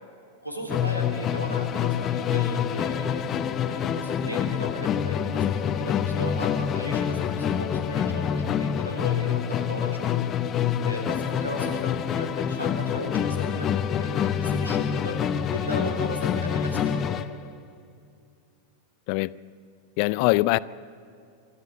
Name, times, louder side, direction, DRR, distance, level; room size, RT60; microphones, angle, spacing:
voice 1, 0.4-3.2 3.6-10.1 10.8-11.8 12.1-13.7 14.0-15.2 15.5-17.0, equal, 85° right, 2 dB, 3.4 m, -36 dB
Musical instrument, 0.7-17.4, left 8 dB, 30° left, 0.9 m, -26 dB
voice 2, 20.0-20.6, left 21 dB, 45° left, 19 dB, 0.4 m, -22 dB
27.0 x 13.0 x 8.3 m, 2.5 s
figure-of-eight pair, 90°, 0 cm